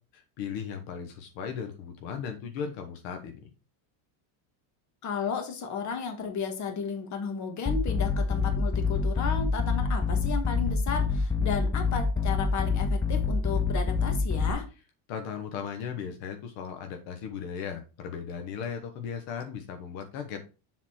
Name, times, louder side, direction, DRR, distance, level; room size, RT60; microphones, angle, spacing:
voice 1, 0.1-3.5 15.1-20.4, left 7 dB, 65° left, 5 dB, 1.4 m, -37 dB
voice 2, 5.0-14.7, left 6 dB, 35° left, 5 dB, 1.7 m, -33 dB
sound 1, 7.7-14.5, left 4 dB, 5° left, 0.6 m, -26 dB
7.4 x 4.2 x 4.4 m, 0.31 s
cardioid pair, 150°, 48 cm